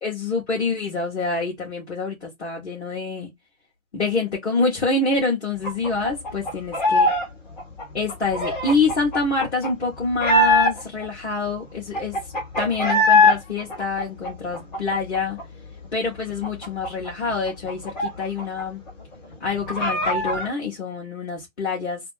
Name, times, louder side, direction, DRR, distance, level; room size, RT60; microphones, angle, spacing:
voice 1, 0.0-3.3 3.9-7.1 7.9-15.4 15.9-18.8 19.4-22.0, left 3 dB, 50° left, 1.5 m, -26 dB
sound 1, 5.6-7.3 7.5-11.0 11.5-11.6 11.7-13.4 13.7-15.4 15.7-15.8 16.1-18.6 18.9-19.0 19.3-20.5, left 2 dB, 30° left, 1.4 m, -22 dB
3.3 x 2.7 x 3.3 m
figure-of-eight pair, 140°, 41 cm